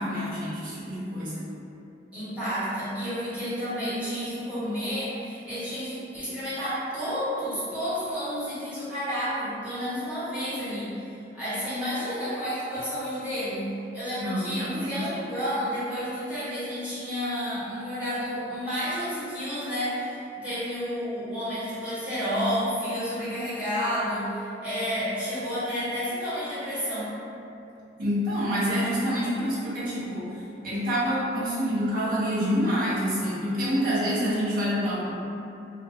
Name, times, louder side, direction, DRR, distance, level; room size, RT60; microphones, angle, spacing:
voice 1, 0.0-1.5 14.2-15.1 28.0-30.4 30.6-35.1, equal, 55° right, -10 dB, 0.9 m, -27 dB
voice 2, 2.1-13.7 13.9-27.1, equal, 10° right, -14 dB, 1.2 m, -31 dB
2.4 x 2.3 x 3.4 m, 2.7 s
head